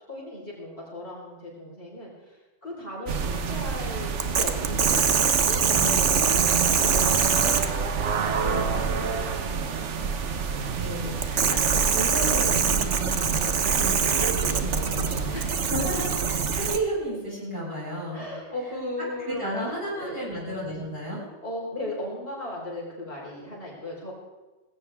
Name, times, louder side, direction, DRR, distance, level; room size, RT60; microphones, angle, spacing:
voice 1, 0.1-10.0 10.3-11.2 11.7-11.9 13.4-13.6 15.3-15.7 18.1-20.2 21.4-24.1, left 1 dB, 50° left, -3 dB, 4.8 m, -38 dB
sound 1, 3.1-16.8, right 6 dB, 85° right, 1.4 m, -24 dB
voice 2, 5.7-6.2 10.8-13.4 13.7-15.4 15.6-18.3 19.3-21.2, right 1 dB, 20° right, -6 dB, 7.1 m, -33 dB
19.0 x 17.0 x 3.6 m, 1.2 s
omnidirectional pair, 1.2 m